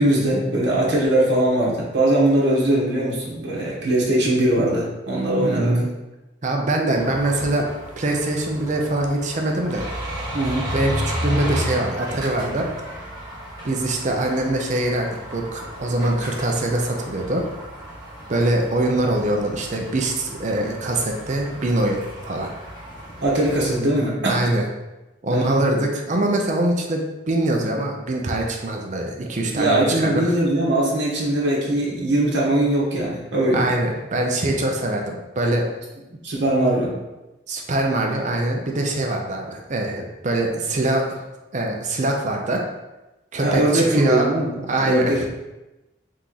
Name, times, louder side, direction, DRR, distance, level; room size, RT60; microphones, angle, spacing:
voice 1, 0.0-5.8 10.3-10.7 23.2-24.5 25.3-25.6 29.5-33.7 36.1-36.9 43.4-45.3, right 1 dB, 65° right, -5 dB, 1.1 m, -21 dB
voice 2, 5.4-5.9 6.4-7.7 8.0-9.9 10.2-10.3 10.7-12.7 13.6-17.4 18.3-22.5 24.2-24.7 25.2-30.3 33.5-35.7 37.5-41.2 41.5-42.6 43.3-44.3 44.7-45.3, right 1 dB, 40° right, 1 dB, 0.5 m, -23 dB
sound 1, 6.9-23.9, equal, 20° right, 1.1 m, -33 dB
3.6 x 3.0 x 3.9 m, 1.0 s
head